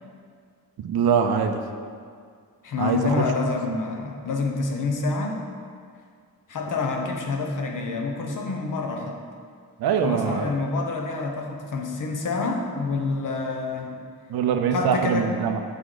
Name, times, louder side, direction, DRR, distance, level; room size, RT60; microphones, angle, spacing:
voice 1, 0.8-1.6 2.8-3.2 9.8-10.5 14.3-15.6, right 7 dB, 85° right, 7 dB, 0.5 m, -23 dB
voice 2, 2.6-5.4 6.5-9.2 10.0-14.0 14.7-15.3, left 3 dB, 60° left, 2 dB, 0.8 m, -27 dB
5.2 x 3.9 x 4.9 m, 2.1 s
wide cardioid pair, 115°, 36 cm